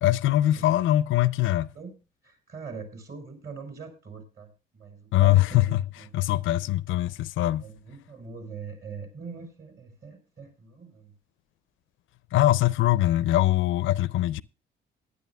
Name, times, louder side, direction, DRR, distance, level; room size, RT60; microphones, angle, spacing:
voice 1, 0.0-1.7 5.1-5.8 6.1-7.6 12.3-14.4, left 14 dB, 80° left, 0.5 m, -22 dB
voice 2, 2.2-6.1 6.5-6.7 7.6-11.1, right 5 dB, 55° right, 5.6 m, -42 dB
20.5 x 10.5 x 2.3 m
cardioid pair, 90°, 20 cm